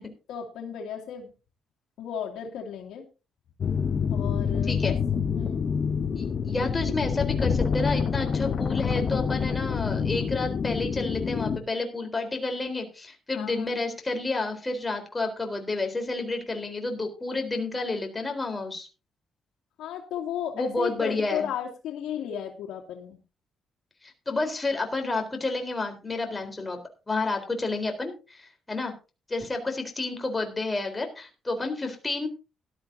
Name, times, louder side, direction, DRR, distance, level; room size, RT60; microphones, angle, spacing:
voice 1, 0.3-1.3 2.0-3.0 4.1-5.0 5.3-5.7 13.3-13.8 19.8-23.2, left 9 dB, 85° left, 1 dB, 2.5 m, -34 dB
sound 1, 3.6-11.6, left 6 dB, 45° left, 0.9 m, -27 dB
voice 2, 6.1-18.9 20.5-21.5 24.0-26.8 27.1-28.9 29.3-32.3, left 3 dB, 20° left, 4 dB, 3.9 m, -30 dB
17.0 x 12.5 x 2.7 m, 0.31 s
cardioid pair, 90°, 0 cm